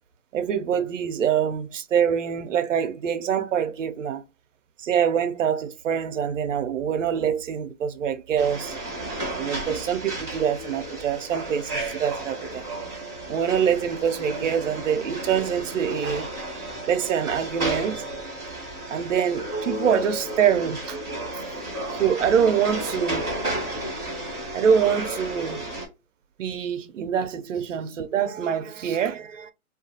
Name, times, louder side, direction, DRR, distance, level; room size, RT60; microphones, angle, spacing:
voice 1, 0.3-4.2 4.8-8.8 9.4-12.6 13.3-16.3 16.9-18.0 18.9-21.0 21.9-23.3 24.5-25.7 26.4-29.5, right 8 dB, 60° right, 0.6 m, -25 dB
sound 1, 8.4-25.9, right 1 dB, 5° left, 0.6 m, -32 dB
2.8 x 2.4 x 2.7 m
hypercardioid pair, 160°, 44 cm